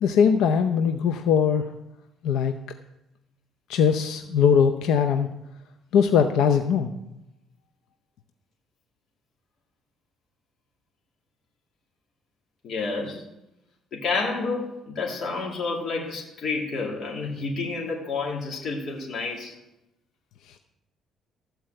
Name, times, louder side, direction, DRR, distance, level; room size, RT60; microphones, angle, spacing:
voice 1, 0.0-1.6 2.2-2.5 3.7-5.3 5.9-6.9, left 7 dB, 85° left, 7 dB, 0.6 m, -20 dB
voice 2, 12.6-13.2 13.9-19.5, left 4 dB, 50° left, -2 dB, 2.3 m, -29 dB
13.5 x 4.6 x 7.6 m, 0.90 s
cardioid pair, 135°, 0 cm